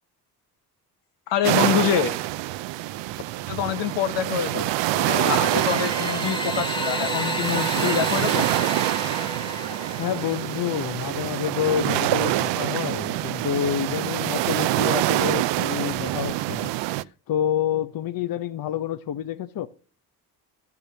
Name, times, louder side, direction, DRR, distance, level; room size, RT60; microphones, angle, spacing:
voice 1, 1.3-2.2 3.5-8.6, left 10 dB, 85° left, 1.2 m, -26 dB
sound 1, 1.4-17.0, right 17 dB, 85° right, 0.6 m, -26 dB
sound 2, 4.9-10.8, left 1 dB, 10° left, 1.1 m, -32 dB
voice 2, 10.0-16.7 17.3-19.7, left 9 dB, 55° left, 0.8 m, -28 dB
12.0 x 7.2 x 8.2 m
cardioid pair, 90°, 42 cm